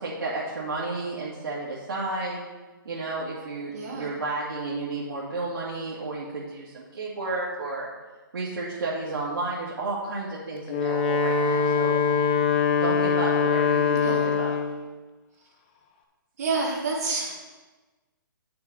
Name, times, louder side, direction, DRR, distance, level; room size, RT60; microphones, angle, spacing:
voice 1, 0.0-2.4 2.8-7.9 8.3-12.0 12.8-14.5, right 2 dB, 80° right, -7 dB, 2.2 m, -32 dB
voice 2, 3.7-4.1 14.0-14.3 16.4-17.4, right 3 dB, 45° right, -3 dB, 2.4 m, -29 dB
Wind instrument woodwind instrument, 10.6-14.8, left 5 dB, 25° left, 0.7 m, -23 dB
8.2 x 6.8 x 4.7 m, 1.3 s
hypercardioid pair, 170°, 12 cm